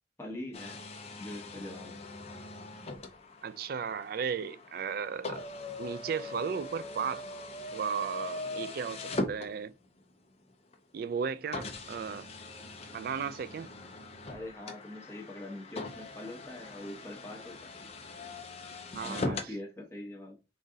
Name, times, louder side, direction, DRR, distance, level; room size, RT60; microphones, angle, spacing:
voice 1, 0.2-0.8 1.2-2.0 14.3-17.7 19.0-20.4, left 1 dB, 15° left, 1.1 m, -43 dB
sound 1, 0.5-10.0 10.7-10.8 11.5-19.6, left 2 dB, 35° left, 0.6 m, -41 dB
voice 2, 3.4-5.5 5.8-7.2 7.7-9.7 10.9-12.3 12.9-13.7 18.9-19.5, right 6 dB, 50° right, 0.3 m, -35 dB
3.9 x 2.5 x 3.7 m
head